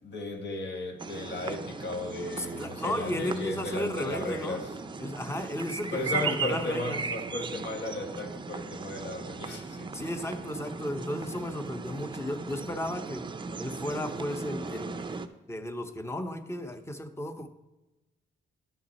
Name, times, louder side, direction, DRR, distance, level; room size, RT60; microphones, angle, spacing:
voice 1, 0.0-4.8 5.9-10.1, left 2 dB, 60° left, 1.5 m, -35 dB
sound 1, 1.0-15.3, right 4 dB, 25° right, 0.5 m, -37 dB
voice 2, 2.4-4.6 5.0-7.0 9.9-13.3 13.6-17.5, left 1 dB, 15° left, 0.8 m, -34 dB
11.5 x 5.9 x 4.1 m
cardioid pair, 90°, 20 cm